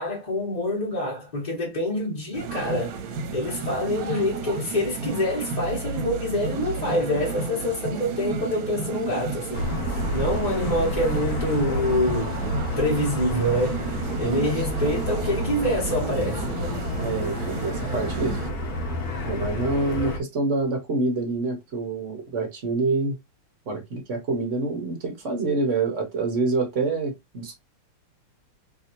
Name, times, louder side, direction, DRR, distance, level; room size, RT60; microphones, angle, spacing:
voice 1, 0.0-3.0 3.3-9.7 10.1-12.4 12.8-13.8 14.2-16.5, left 1 dB, 25° left, 0.9 m, -26 dB
sound 1, 2.3-18.5, right 4 dB, 70° right, 1.3 m, -32 dB
sound 2, 9.5-20.2, left 1 dB, 55° left, 1.2 m, -30 dB
voice 2, 17.0-18.4 19.2-23.2 23.7-27.6, right 3 dB, 55° right, 0.8 m, -26 dB
3.3 x 2.7 x 2.7 m
omnidirectional pair, 2.4 m